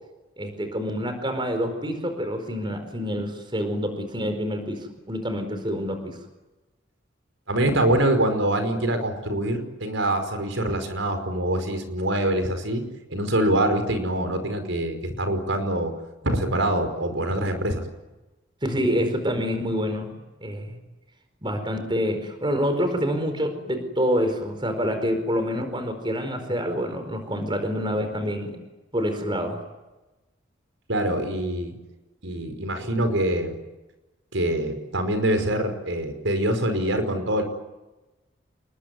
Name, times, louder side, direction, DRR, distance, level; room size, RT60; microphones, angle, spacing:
voice 1, 0.4-6.2 18.6-20.1 20.4-20.8 21.4-28.6 28.9-29.6, equal, 25° right, 8 dB, 4.6 m, -27 dB
voice 2, 7.5-12.8 13.1-15.9 16.2-17.8 30.9-31.7 32.2-33.5 34.3-37.4, right 1 dB, 85° right, 7 dB, 5.1 m, -24 dB
28.5 x 21.5 x 9.5 m, 1.1 s
head